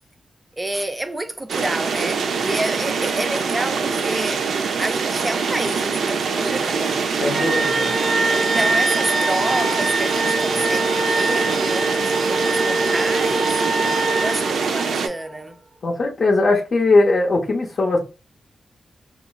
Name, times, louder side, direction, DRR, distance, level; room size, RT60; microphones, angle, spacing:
voice 1, 0.5-4.4 4.8-7.0 8.3-13.5 14.2-15.6, right 1 dB, 20° right, 0.4 m, -29 dB
sound 1, 1.5-15.1, right 5 dB, 85° right, 0.3 m, -24 dB
voice 2, 7.2-7.9 15.8-18.0, left 2 dB, 60° left, 0.5 m, -19 dB
sound 2, 7.2-15.4, right 2 dB, 50° right, 1.0 m, -23 dB
3.0 x 2.3 x 2.2 m
cardioid pair, 70°, 0 cm